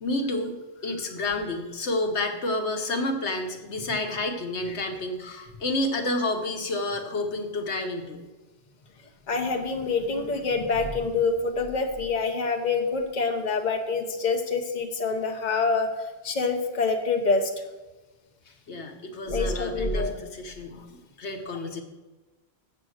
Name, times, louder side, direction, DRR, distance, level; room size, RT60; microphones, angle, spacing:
voice 1, 0.0-8.2 18.7-21.8, left 2 dB, 80° left, 4 dB, 1.4 m, -30 dB
voice 2, 9.3-17.6 19.3-20.2 20.8-20.9, left 4 dB, 45° left, 4 dB, 1.1 m, -26 dB
8.1 x 7.5 x 6.4 m, 1.2 s
omnidirectional pair, 1.1 m